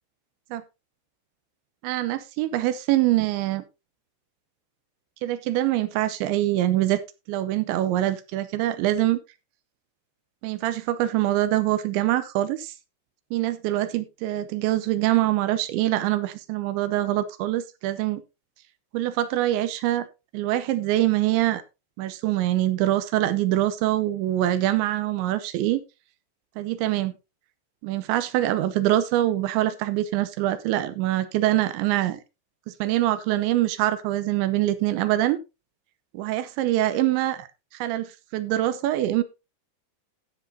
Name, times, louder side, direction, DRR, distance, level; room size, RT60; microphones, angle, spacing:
voice 1, 1.8-3.6 5.2-7.0 7.3-9.2 10.4-12.7 13.3-18.2 18.9-20.1 20.3-21.6 22.0-25.8 26.6-27.2 27.8-32.2 32.7-35.4 36.1-37.5 37.7-39.2, right 14 dB, 85° right, 14 dB, 3.1 m, -24 dB
16.0 x 7.7 x 2.7 m, 0.25 s
omnidirectional pair, 5.3 m